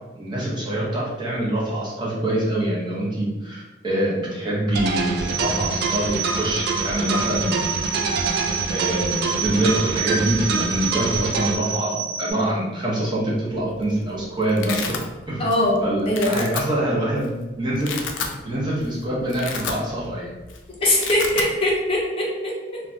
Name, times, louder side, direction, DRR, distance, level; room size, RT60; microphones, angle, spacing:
voice 1, 0.2-7.6 7.9-8.0 8.7-15.0 15.3-15.5 15.8-17.9 18.4-20.3, right 1 dB, 25° right, -6 dB, 0.6 m, -25 dB
sound 1, 4.7-11.5, right 4 dB, 55° right, 0.3 m, -26 dB
sound 2, 5.2-12.3, right 6 dB, 90° right, 0.8 m, -29 dB
Domestic sounds home sounds, 13.6-13.9 14.2-15.0 15.5-15.8 16.1-16.6 17.2-17.3 17.7-18.4 18.8-18.9 19.2-20.2 20.4-20.6 20.8-21.5, left 6 dB, 85° left, 0.4 m, -30 dB
voice 2, 15.4-16.5 20.8-22.8, left 1 dB, 30° left, -3 dB, 0.5 m, -22 dB
3.1 x 2.2 x 2.5 m, 1.2 s
head